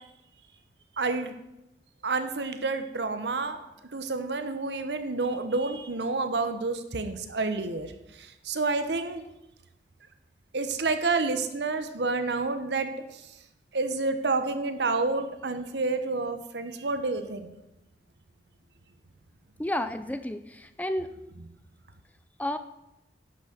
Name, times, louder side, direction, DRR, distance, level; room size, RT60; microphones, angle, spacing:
voice 1, 1.0-1.3 2.0-3.6 3.9-7.9 8.2-9.2 10.5-12.9 13.7-17.5, right 3 dB, 85° right, 9 dB, 1.0 m, -29 dB
voice 2, 19.6-21.1 22.4-22.6, left 1 dB, 10° left, 11 dB, 0.4 m, -31 dB
10.5 x 6.2 x 6.4 m, 0.89 s
head